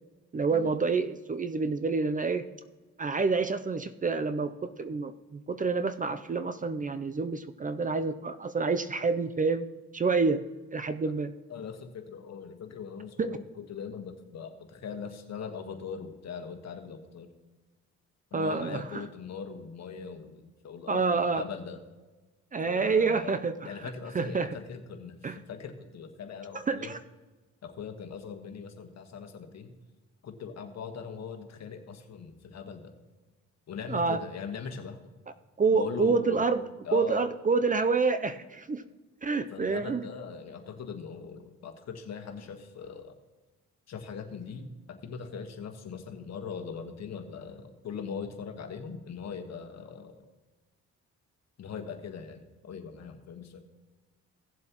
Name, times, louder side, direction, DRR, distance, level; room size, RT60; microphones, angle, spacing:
voice 1, 0.3-2.5 3.0-9.7 9.9-10.4 10.7-11.3 13.2-13.3 18.3-19.1 20.9-21.4 22.5-23.9 24.1-24.6 25.2-25.4 26.5-27.0 33.9-34.2 35.6-38.8 39.2-40.0, right 4 dB, 25° right, 11 dB, 0.5 m, -28 dB
voice 2, 11.5-17.3 18.3-21.8 22.6-23.4 23.6-26.9 27.6-29.7 30.2-32.9 33.7-35.0 35.7-36.5 36.8-37.2 39.5-43.1 43.9-50.2 51.6-53.6, left 6 dB, 60° left, 5 dB, 1.5 m, -40 dB
16.5 x 7.5 x 3.0 m, 1.2 s
cardioid pair, 90°, 30 cm